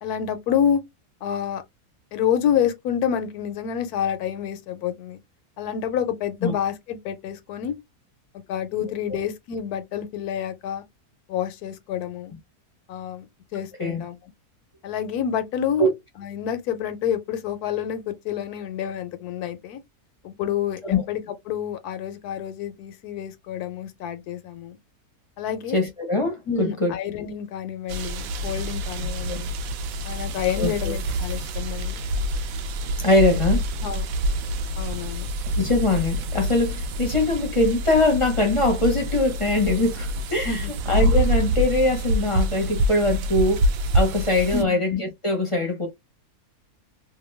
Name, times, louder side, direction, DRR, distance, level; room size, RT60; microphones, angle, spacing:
voice 1, 0.0-0.8 1.2-1.6 2.1-5.2 5.6-7.8 8.5-10.8 11.3-12.3 12.9-13.3 13.5-14.2 14.8-15.9 16.2-19.8 20.2-24.8 25.4-25.8 26.5-29.5 30.0-32.0 33.8-34.1 34.8-35.3 40.4-40.7 44.5-44.8, left 9 dB, 85° left, 1.1 m, -28 dB
voice 2, 25.7-26.9 29.3-29.4 30.6-30.9 33.0-33.6 35.6-43.6 43.9-45.9, left 2 dB, 30° left, 0.6 m, -22 dB
sound 1, 27.9-44.6, right 1 dB, 70° right, 0.9 m, -26 dB
2.9 x 2.2 x 3.2 m
omnidirectional pair, 1.6 m